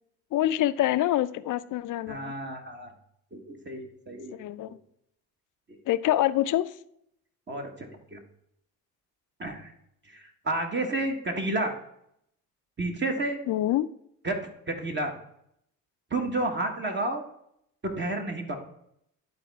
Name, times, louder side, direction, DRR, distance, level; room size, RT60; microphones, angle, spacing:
voice 1, 0.3-2.3 4.3-4.7 5.9-6.8 13.5-13.9, left 13 dB, 60° left, 15 dB, 0.5 m, -26 dB
voice 2, 2.1-2.9 3.3-4.4 7.5-8.2 9.4-9.7 10.1-11.8 12.8-13.4 14.2-14.4 14.7-15.1 16.1-17.2 17.8-18.6, right 2 dB, 30° right, 3 dB, 1.4 m, -31 dB
11.0 x 4.1 x 3.5 m, 0.73 s
cardioid pair, 85°, 35 cm